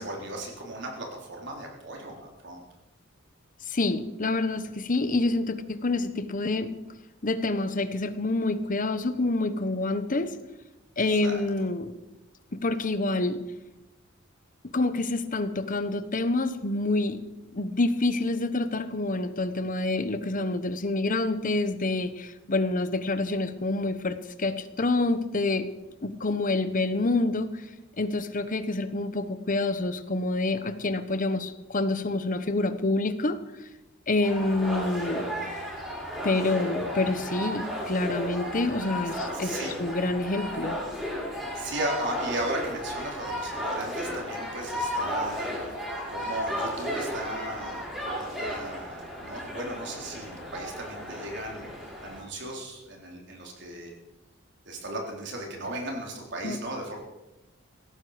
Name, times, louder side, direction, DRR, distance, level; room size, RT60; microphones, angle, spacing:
voice 1, 0.0-2.6 11.0-11.4 39.4-39.7 41.5-51.7 52.0-53.9 54.7-57.0, right 1 dB, 60° right, 0 dB, 3.9 m, -36 dB
voice 2, 3.7-6.7 7.2-10.3 11.0-11.9 12.5-13.4 14.7-17.2 17.5-25.7 26.0-27.6 28.0-33.4 34.1-35.3 36.2-40.8 56.4-56.6, left 2 dB, 40° left, 11 dB, 1.1 m, -27 dB
sound 1, 34.2-52.2, equal, 5° right, 6.2 m, -34 dB
17.0 x 14.0 x 5.1 m, 0.99 s
head